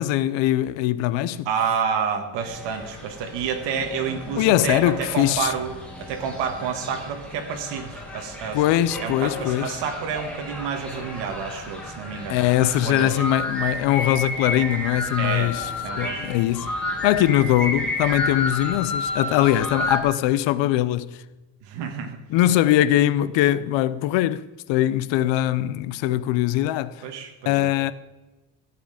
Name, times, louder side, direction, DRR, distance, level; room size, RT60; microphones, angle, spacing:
voice 1, 0.0-1.5 4.3-5.5 8.5-9.8 12.3-15.7 16.0-16.7 17.0-21.2 22.3-27.0 27.5-27.9, left 13 dB, 90° left, 0.7 m, -21 dB
voice 2, 1.4-5.7 6.0-8.6 9.0-13.2 15.2-15.5 15.8-16.3 21.7-22.2 27.0-27.7, right 6 dB, 75° right, 1.7 m, -29 dB
sound 1, 2.4-20.0, left 2 dB, 5° left, 1.9 m, -32 dB
15.0 x 7.9 x 5.1 m
cardioid pair, 180°, 43 cm